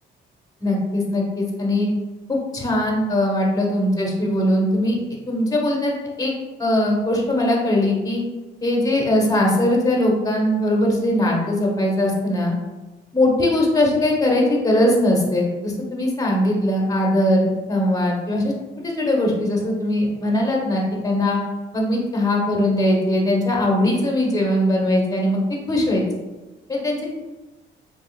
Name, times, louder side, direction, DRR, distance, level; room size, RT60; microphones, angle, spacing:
voice 1, 0.6-1.9 2.3-5.0 5.3-6.3 6.6-8.2 8.6-12.5 13.1-18.5 18.8-21.4 21.7-25.4 25.7-26.0 26.7-27.1, left 1 dB, 20° left, -1 dB, 1.0 m, -20 dB
3.6 x 3.2 x 2.3 m, 1.2 s
cardioid pair, 90°, 20 cm